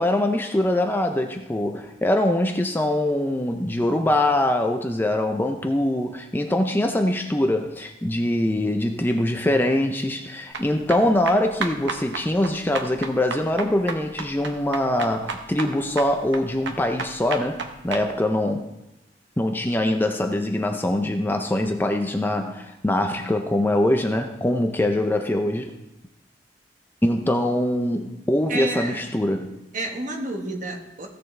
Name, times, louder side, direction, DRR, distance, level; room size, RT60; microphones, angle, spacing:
voice 1, 0.0-18.7 19.4-25.8 27.0-29.6, left 1 dB, 10° left, 0.5 m, -23 dB
sound 1, 10.5-18.0, right 4 dB, 75° right, 1.0 m, -33 dB
voice 2, 28.5-29.0 29.7-31.1, right 2 dB, 45° right, 1.4 m, -30 dB
15.5 x 6.7 x 3.3 m
head